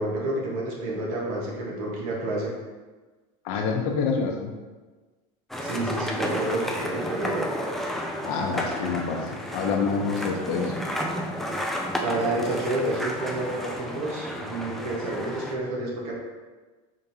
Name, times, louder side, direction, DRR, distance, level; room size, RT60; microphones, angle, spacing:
voice 1, 0.0-2.5 5.6-7.5 12.0-16.1, right 2 dB, 80° right, -3 dB, 1.4 m, -29 dB
voice 2, 3.4-4.5 8.2-10.7, left 5 dB, 60° left, 2 dB, 0.8 m, -27 dB
sound 1, 5.5-15.5, equal, ahead, 0.3 m, -32 dB
5.2 x 3.6 x 2.8 m, 1.3 s
cardioid pair, 155°, 18 cm